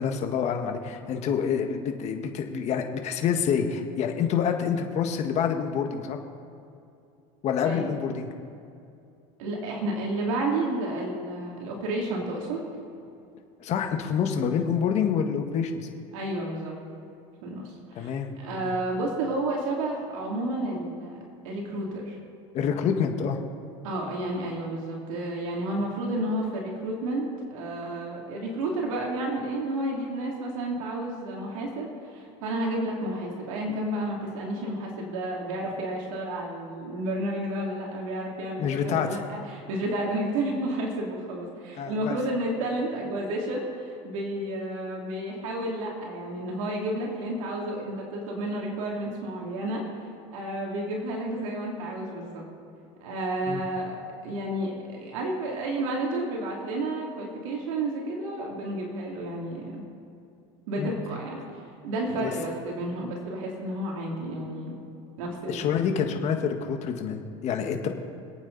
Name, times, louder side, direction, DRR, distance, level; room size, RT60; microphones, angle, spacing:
voice 1, 0.0-6.2 7.4-8.3 13.6-15.9 17.9-18.7 22.5-23.4 38.6-39.2 41.8-42.2 53.5-53.6 60.8-60.9 62.2-62.3 65.5-67.9, left 7 dB, 45° left, 4 dB, 1.6 m, -27 dB
voice 2, 9.4-12.6 16.1-16.7 17.4-21.2 21.4-22.2 23.8-49.8 50.3-52.4 53.0-53.9 54.2-59.8 60.7-64.7 65.2-65.7 66.1-66.2 67.8-67.9, right 1 dB, 85° right, -2 dB, 2.9 m, -31 dB
26.0 x 9.0 x 4.1 m, 2.6 s
supercardioid pair, 135°, 17 cm